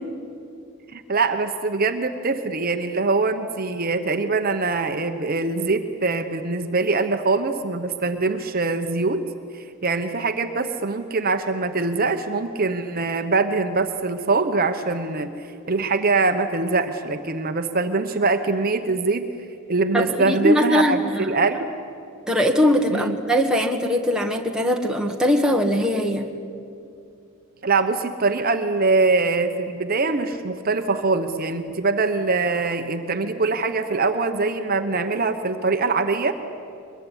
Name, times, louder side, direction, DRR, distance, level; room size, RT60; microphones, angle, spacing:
voice 1, 0.9-9.2 9.5-19.3 19.7-21.7 22.9-23.2 27.6-36.3, right 3 dB, 40° right, 7 dB, 1.0 m, -23 dB
voice 2, 19.9-21.4 22.3-26.3, equal, 5° right, 1 dB, 1.6 m, -21 dB
23.5 x 21.5 x 10.0 m, 2.6 s
head